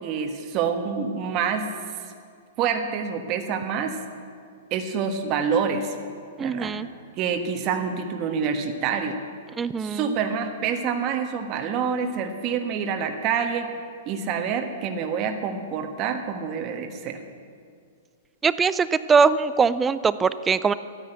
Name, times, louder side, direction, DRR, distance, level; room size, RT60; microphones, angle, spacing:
voice 1, 0.0-1.7 2.6-4.0 4.7-6.0 6.4-6.8 7.2-9.2 9.8-13.7 14.1-17.2, right 6 dB, 40° right, 5 dB, 1.3 m, -27 dB
voice 2, 6.4-6.9 9.6-10.2 18.4-20.7, right 5 dB, 15° right, 15 dB, 0.4 m, -21 dB
13.0 x 9.8 x 9.1 m, 2.2 s
hypercardioid pair, 130°, 0 cm